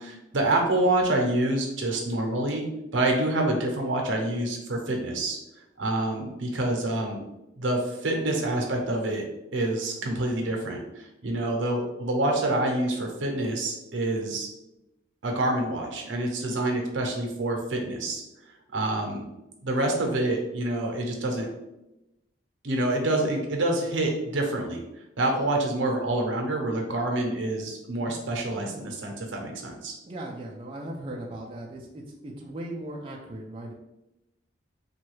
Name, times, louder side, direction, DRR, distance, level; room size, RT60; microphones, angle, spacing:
voice 1, 0.0-2.6 2.9-5.4 5.8-7.2 7.5-9.2 9.5-14.5 15.2-18.2 18.7-19.2 19.6-21.5 22.6-24.8 25.2-29.9, right 1 dB, 80° right, 2 dB, 0.6 m, -27 dB
voice 2, 30.1-33.7, right 1 dB, 25° right, -2 dB, 0.3 m, -38 dB
3.0 x 2.3 x 3.1 m, 0.93 s
head